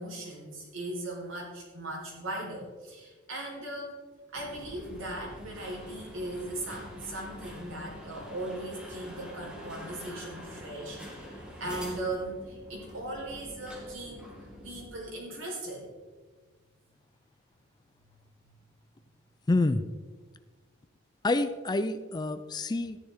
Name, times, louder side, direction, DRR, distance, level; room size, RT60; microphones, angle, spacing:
voice 1, 0.0-4.0 4.3-14.2 14.6-15.9, right 1 dB, 70° right, -2 dB, 4.4 m, -38 dB
sound 1, 4.3-14.8, equal, 5° right, 2.7 m, -45 dB
voice 2, 19.5-19.9 21.2-23.0, left 2 dB, 20° left, 12 dB, 0.4 m, -27 dB
14.0 x 10.5 x 3.7 m, 1.4 s
head